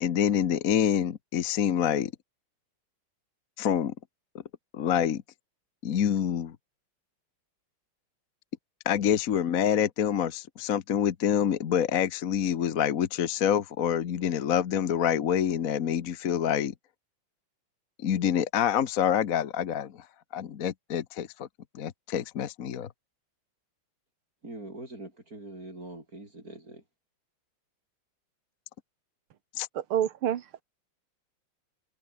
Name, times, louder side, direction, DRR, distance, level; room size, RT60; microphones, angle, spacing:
voice 1, 0.0-2.1 3.6-3.9 4.7-5.2 5.8-6.6 8.8-16.7 18.0-20.0 20.3-21.5 21.7-22.9 29.6-29.7, left 9 dB, 50° left, 1.3 m, -26 dB
voice 2, 24.4-26.8, right 2 dB, 40° right, 7.3 m, -43 dB
voice 3, 29.7-30.6, right 10 dB, 85° right, 2.1 m, -28 dB
omnidirectional pair, 2.3 m